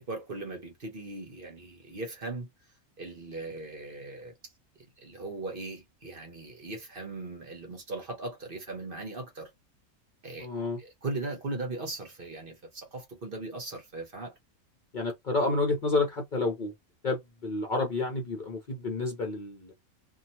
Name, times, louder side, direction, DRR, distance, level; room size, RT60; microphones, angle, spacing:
voice 1, 0.0-2.5 3.0-4.3 5.0-9.5 10.2-10.5 10.8-14.3, right 2 dB, 45° right, 1.0 m, -38 dB
voice 2, 10.4-10.8 14.9-16.7 17.0-19.7, left 3 dB, 50° left, 0.7 m, -30 dB
2.8 x 2.3 x 2.7 m
omnidirectional pair, 1.4 m